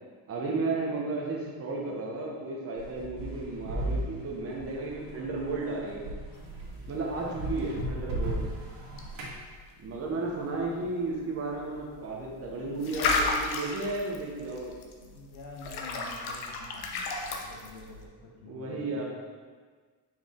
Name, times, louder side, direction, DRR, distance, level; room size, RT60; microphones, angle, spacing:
voice 1, 0.3-6.0 6.9-8.5 9.8-14.8 18.4-19.0, right 3 dB, 30° right, -3 dB, 0.9 m, -33 dB
sound 1, 2.8-9.4, right 1 dB, 80° right, 1.8 m, -36 dB
sound 2, 6.3-18.1, left 3 dB, 55° left, 0.8 m, -35 dB
voice 2, 7.8-8.2 8.9-9.0 10.4-10.9 14.8-19.0, left 2 dB, 75° left, -2 dB, 1.4 m, -48 dB
5.8 x 4.7 x 3.6 m, 1.5 s
cardioid pair, 150°, 46 cm